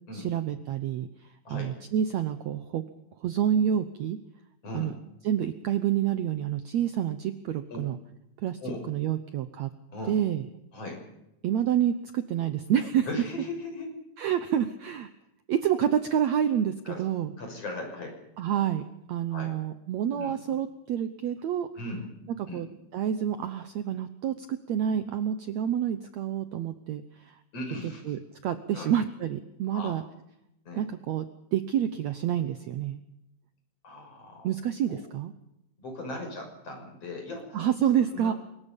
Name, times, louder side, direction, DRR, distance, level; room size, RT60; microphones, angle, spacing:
voice 1, 0.1-2.8 3.2-4.2 4.7-4.9 5.2-8.0 8.4-8.6 8.9-9.7 10.1-10.5 11.4-13.1 14.2-15.1 15.5-17.3 18.4-18.8 19.1-21.7 22.5-22.7 22.9-27.4 28.1-30.0 30.8-31.2 31.5-33.0 34.4-35.3 37.5-38.3, right 9 dB, 80° right, 10 dB, 1.5 m, -28 dB
voice 2, 13.1-13.9 14.2-14.3 16.9-17.0 17.4-18.2 19.3-19.5 20.1-20.3 21.7-22.1 22.5-22.6 27.5-28.2 28.7-28.9 29.7-29.9 30.7-30.8 33.8-34.5 34.9-35.0 35.8-37.6 38.1-38.3, left 2 dB, 35° left, 3 dB, 7.0 m, -38 dB
24.5 x 22.0 x 5.4 m, 0.85 s
omnidirectional pair, 4.6 m